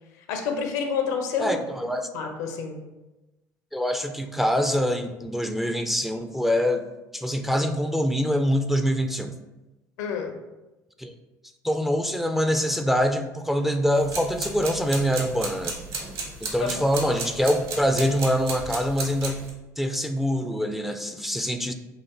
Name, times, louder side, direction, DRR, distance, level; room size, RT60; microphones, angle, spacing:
voice 1, 0.3-1.6 2.1-2.8 10.0-10.4 16.6-16.8, left 6 dB, 70° left, 4 dB, 0.7 m, -28 dB
voice 2, 1.4-2.1 3.7-6.8 7.1-9.3 11.0-11.1 11.6-15.7 16.4-19.4 19.8-21.7, equal, 5° right, 6 dB, 0.4 m, -24 dB
sound 1, 13.9-19.5, right 3 dB, 60° right, 1.1 m, -34 dB
6.6 x 2.4 x 2.9 m, 1.0 s
hypercardioid pair, 65°, 9 cm